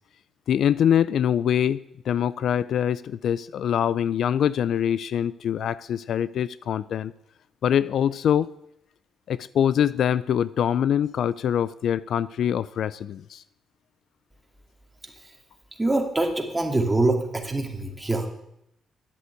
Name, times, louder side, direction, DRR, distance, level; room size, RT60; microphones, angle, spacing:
voice 1, 0.5-1.8 2.1-7.1 7.6-8.5 9.3-13.4, left 9 dB, 65° left, 18 dB, 0.4 m, -24 dB
voice 2, 15.8-18.3, right 2 dB, 10° right, 2 dB, 2.5 m, -24 dB
10.5 x 8.1 x 8.3 m, 0.79 s
cardioid pair, 90°, 0 cm